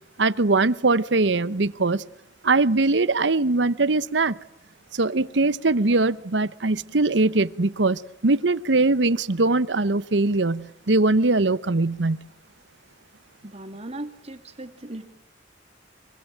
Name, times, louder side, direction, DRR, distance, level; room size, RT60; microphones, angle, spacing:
voice 1, 0.2-2.0 2.4-4.4 4.9-12.2, right 3 dB, 75° right, 17 dB, 1.0 m, -21 dB
voice 2, 13.4-15.1, right 1 dB, 35° right, 8 dB, 2.7 m, -38 dB
25.5 x 24.0 x 9.1 m, 0.80 s
head